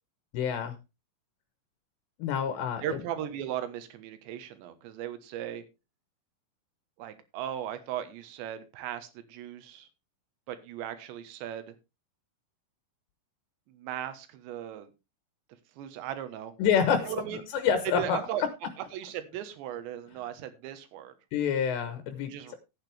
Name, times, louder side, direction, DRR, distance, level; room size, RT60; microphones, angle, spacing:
voice 1, 0.3-0.8 2.2-3.0 16.6-17.1 17.5-18.2 21.3-22.6, left 7 dB, 80° left, 9 dB, 3.3 m, -27 dB
voice 2, 2.8-5.6 7.0-9.9 10.5-11.8 13.7-14.9 15.8-16.5 17.1-17.4 18.0-18.4 18.8-21.1 22.2-22.6, right 11 dB, 85° right, 11 dB, 3.5 m, -37 dB
14.0 x 9.0 x 3.4 m, 0.26 s
omnidirectional pair, 5.1 m